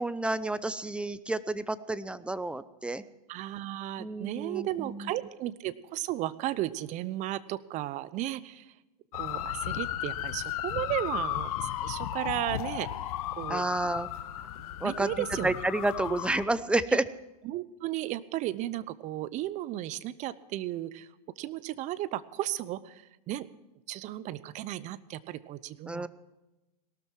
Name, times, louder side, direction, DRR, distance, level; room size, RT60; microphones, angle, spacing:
voice 1, 0.0-3.0 4.0-5.1 13.5-14.5 14.8-17.0 25.9-26.1, right 2 dB, 5° right, 15 dB, 0.6 m, -30 dB
voice 2, 3.3-8.7 9.1-13.6 14.8-15.5 16.1-16.2 17.4-21.1 21.4-23.5 23.9-26.1, right 14 dB, 40° right, 17 dB, 0.8 m, -35 dB
sound 1, 9.1-16.5, left 12 dB, 65° left, 1.3 m, -35 dB
18.0 x 13.0 x 4.6 m, 1.0 s
hypercardioid pair, 115°, 20 cm